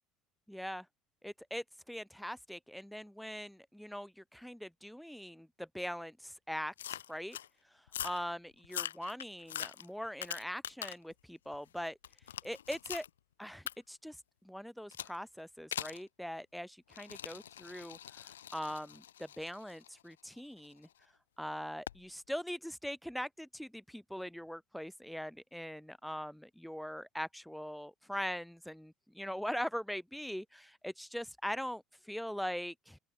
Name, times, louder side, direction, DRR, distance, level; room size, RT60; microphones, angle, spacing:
voice 1, 0.5-0.9 1.2-7.4 7.7-12.0 12.4-13.0 13.4-14.2 14.4-20.9 21.4-33.0, equal, ahead, 5.9 m, -42 dB
sound 1, 6.8-7.5 7.9-8.2 8.6-11.1 11.5-13.1 13.7-13.8 14.9-15.2 15.7-16.0 16.9-20.9 21.9-22.0, left 10 dB, 85° left, 3.1 m, -43 dB
open air
hypercardioid pair, 65°, 0 cm